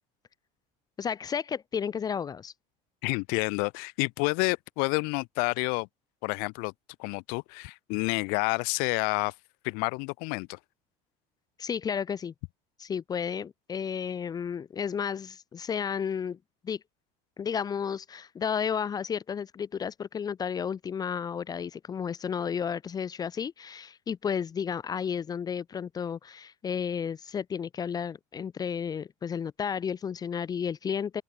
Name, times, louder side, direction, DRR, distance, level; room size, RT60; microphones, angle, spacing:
voice 1, 1.0-2.5 11.6-12.3 12.8-16.4 16.6-16.8 17.4-31.2, left 7 dB, 25° left, 1.5 m, -32 dB
voice 2, 3.0-5.9 6.2-6.7 7.0-9.3 9.6-10.6, left 34 dB, 75° left, 0.8 m, -29 dB
open air
cardioid pair, 155°, 16 cm